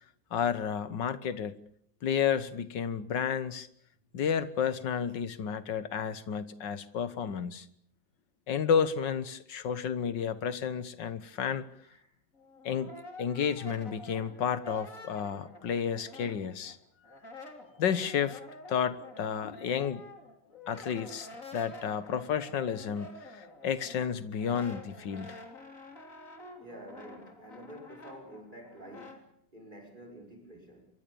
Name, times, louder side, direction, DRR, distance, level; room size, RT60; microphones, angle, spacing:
voice 1, 0.3-1.6 2.0-3.7 4.1-7.7 8.5-11.6 12.7-12.9 13.2-16.8 17.8-18.4 18.7-20.0 20.7-25.4, left 7 dB, 70° left, 14 dB, 1.9 m, -31 dB
Brass instrument, 12.3-16.8 17.0-29.2, left 2 dB, 45° left, 3.8 m, -49 dB
voice 2, 17.0-17.4 26.6-30.9, right 1 dB, 25° right, 4 dB, 6.1 m, -49 dB
26.5 x 23.0 x 7.0 m, 0.67 s
omnidirectional pair, 2.0 m